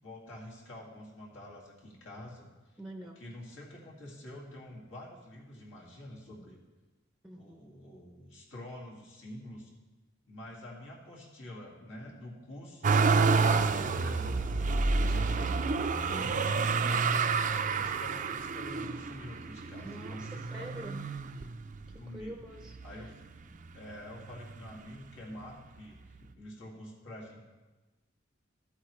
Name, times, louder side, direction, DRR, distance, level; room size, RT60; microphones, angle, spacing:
voice 1, 0.0-2.5 3.2-6.6 7.4-9.7 10.2-13.0 13.5-15.6 16.0-17.4 17.7-20.7 22.0-22.4 22.8-23.1 23.7-27.4, left 1 dB, 70° left, -3 dB, 2.2 m, -47 dB
voice 2, 2.8-3.2 7.2-7.6 16.1-16.5 19.8-21.1 21.9-22.7 23.0-23.1, right 1 dB, 5° right, 3 dB, 0.7 m, -45 dB
Motor vehicle (road), 12.8-22.0 22.6-23.4 23.6-24.8 25.8-25.9, right 4 dB, 40° right, 0.5 m, -29 dB
13.5 x 8.3 x 3.2 m, 1.2 s
head